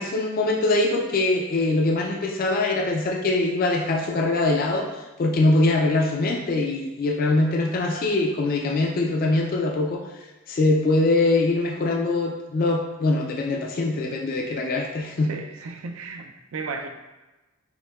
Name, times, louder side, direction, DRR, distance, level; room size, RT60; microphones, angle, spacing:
voice 1, 0.0-4.9 5.2-10.0 10.5-15.4, left 2 dB, 45° left, 1 dB, 0.3 m, -23 dB
voice 2, 15.3-16.9, right 4 dB, 80° right, 5 dB, 0.4 m, -34 dB
5.7 x 2.1 x 2.2 m, 1.1 s
head